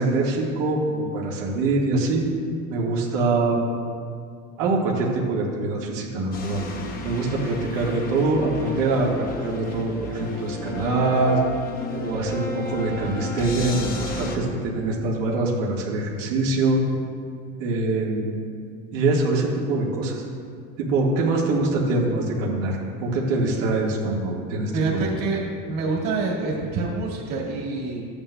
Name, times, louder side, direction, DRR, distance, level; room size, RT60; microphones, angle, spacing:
voice 1, 0.0-2.3 2.7-3.7 4.6-6.6 7.0-11.4 11.9-16.8 17.6-18.4 18.9-20.2 20.8-25.1, right 2 dB, 85° right, -3 dB, 1.6 m, -24 dB
sound 1, 6.3-14.4, left 2 dB, 25° left, 0.7 m, -33 dB
voice 2, 24.7-25.4 25.7-28.0, right 3 dB, 45° right, -4 dB, 1.8 m, -26 dB
13.5 x 8.7 x 2.2 m, 2.2 s
cardioid pair, 170°, 36 cm